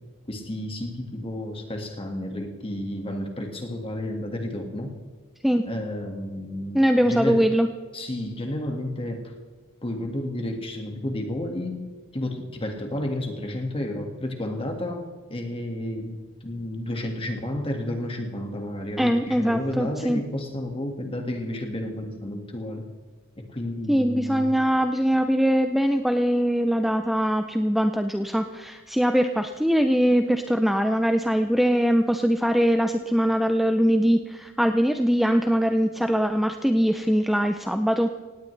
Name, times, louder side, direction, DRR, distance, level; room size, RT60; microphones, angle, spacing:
voice 1, 0.3-4.9 5.7-7.4 7.9-9.2 9.8-11.8 12.1-15.0 15.3-16.2 16.4-22.8 23.4-24.5, left 1 dB, 25° left, 3 dB, 1.8 m, -31 dB
voice 2, 6.7-7.7 19.0-20.2 23.9-38.1, equal, ahead, 6 dB, 0.5 m, -22 dB
17.5 x 17.5 x 3.3 m, 1.5 s
head